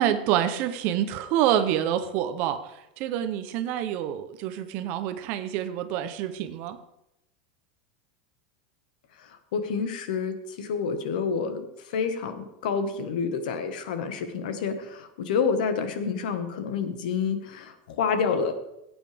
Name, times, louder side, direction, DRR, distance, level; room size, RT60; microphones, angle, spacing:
voice 1, 0.0-6.8, right 11 dB, 35° right, 11 dB, 0.7 m, -27 dB
voice 2, 9.5-18.5, left 5 dB, 65° left, 8 dB, 1.5 m, -28 dB
17.5 x 8.9 x 3.5 m, 0.86 s
supercardioid pair, 180°, 5 cm